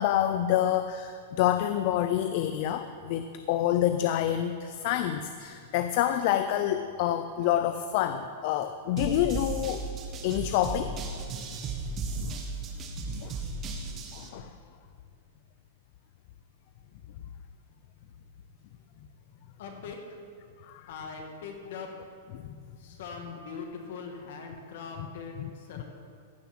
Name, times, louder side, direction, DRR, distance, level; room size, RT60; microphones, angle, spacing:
voice 1, 0.0-9.8 10.2-10.9 12.1-12.4 13.1-13.3 14.1-14.6 20.7-20.9 22.3-22.4 23.2-23.4 25.4-25.5 25.8-25.9, left 11 dB, 45° left, 9 dB, 0.5 m, -28 dB
sound 1, 9.0-14.3, right 3 dB, 25° right, 1.2 m, -35 dB
voice 2, 19.6-20.2 20.9-21.9 22.8-25.4 25.7-25.8, left 5 dB, 60° left, 3 dB, 2.2 m, -41 dB
15.0 x 7.0 x 6.1 m, 2.2 s
supercardioid pair, 155°, 0 cm